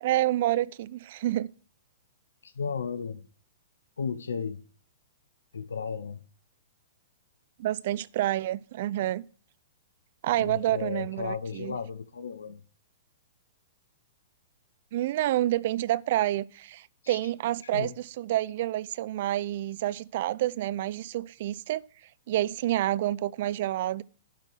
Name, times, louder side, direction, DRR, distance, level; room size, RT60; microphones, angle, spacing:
voice 1, 0.0-1.5 7.6-9.2 10.2-11.8 14.9-21.8 22.3-24.0, right 14 dB, 55° right, 0.4 m, -28 dB
voice 2, 2.4-3.2 4.0-4.6 5.5-6.2 10.4-12.6 17.0-17.2 17.7-17.9, left 6 dB, 75° left, 0.7 m, -34 dB
12.0 x 4.6 x 6.3 m
figure-of-eight pair, 110°, 0 cm